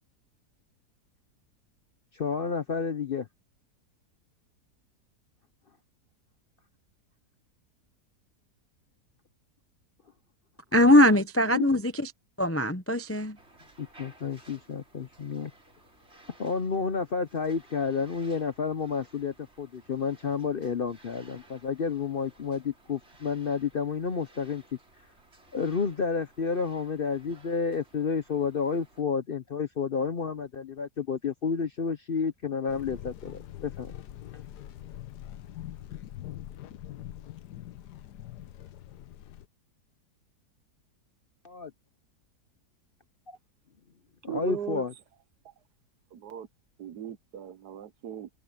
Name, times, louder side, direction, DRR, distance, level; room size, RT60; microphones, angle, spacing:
voice 1, 2.1-3.3 11.5-11.7 13.8-15.5 16.4-24.6 25.5-33.9 41.4-41.7 43.3-43.4 44.2-44.9, left 5 dB, 45° left, 0.7 m, -30 dB
voice 2, 10.7-12.1 12.4-13.4, left 1 dB, 20° left, 0.4 m, -21 dB
sound 1, 13.3-29.0, right 1 dB, 40° right, 4.6 m, -58 dB
sound 2, 32.7-39.4, left 12 dB, 85° left, 1.4 m, -43 dB
voice 3, 44.3-44.8 46.1-46.5 46.8-48.3, right 9 dB, 75° right, 1.5 m, -38 dB
omnidirectional pair, 1.7 m